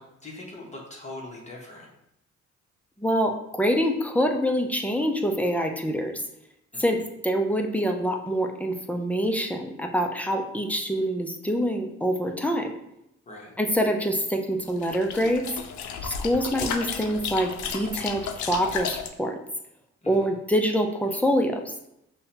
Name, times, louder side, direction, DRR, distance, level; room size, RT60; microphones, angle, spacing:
voice 1, 0.0-1.9 6.7-7.0 13.3-13.5 20.0-20.3, left 2 dB, 25° left, -2 dB, 0.9 m, -42 dB
voice 2, 3.0-6.1 6.8-12.7 13.6-15.5 16.0-19.4 20.1-21.7, equal, 5° left, 3 dB, 0.4 m, -25 dB
sound 1, 14.7-19.1, left 6 dB, 70° left, 0.5 m, -33 dB
5.4 x 2.2 x 2.8 m, 0.82 s
cardioid pair, 90°, 30 cm